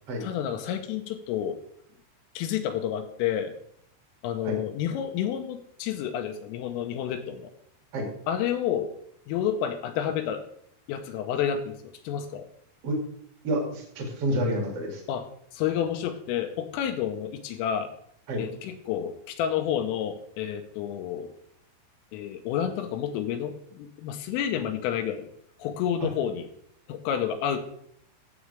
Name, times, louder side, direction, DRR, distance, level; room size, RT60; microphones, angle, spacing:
voice 1, 0.2-1.6 2.4-3.5 4.2-7.5 8.3-8.9 9.3-10.4 10.9-12.5 15.1-17.9 18.4-21.3 22.1-25.3 25.6-26.5 26.9-27.6, left 9 dB, 85° left, 6 dB, 3.3 m, -30 dB
voice 2, 13.4-15.0 18.3-18.4 26.0-26.1, right 1 dB, 45° right, 0 dB, 2.1 m, -28 dB
14.5 x 7.3 x 3.4 m, 0.68 s
omnidirectional pair, 6.0 m